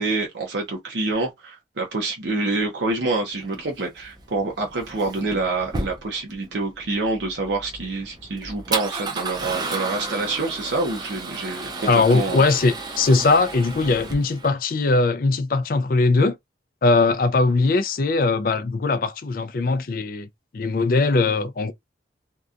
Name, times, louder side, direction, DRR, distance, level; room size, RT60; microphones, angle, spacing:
voice 1, 0.0-12.4, right 3 dB, 70° right, 0.6 m, -27 dB
Male speech man speaking / Car / Engine starting, 3.4-14.5, right 3 dB, 20° right, 0.5 m, -33 dB
voice 2, 11.9-16.4 16.8-20.3 20.5-21.7, left 3 dB, 50° left, 0.4 m, -20 dB
2.7 x 2.2 x 2.4 m
head